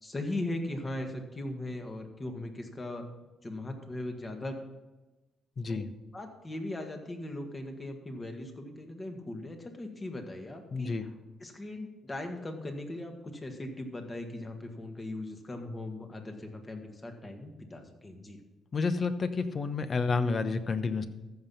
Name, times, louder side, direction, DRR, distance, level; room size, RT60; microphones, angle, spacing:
voice 1, 0.0-3.0 3.4-4.6 5.7-5.8 6.1-11.1 11.4-18.4, left 1 dB, 25° left, 4 dB, 1.8 m, -39 dB
voice 2, 5.6-5.9 10.7-11.1 18.7-21.0, left 4 dB, 40° left, 10 dB, 0.9 m, -30 dB
14.5 x 5.9 x 5.6 m, 1.1 s
cardioid pair, 90°, 0 cm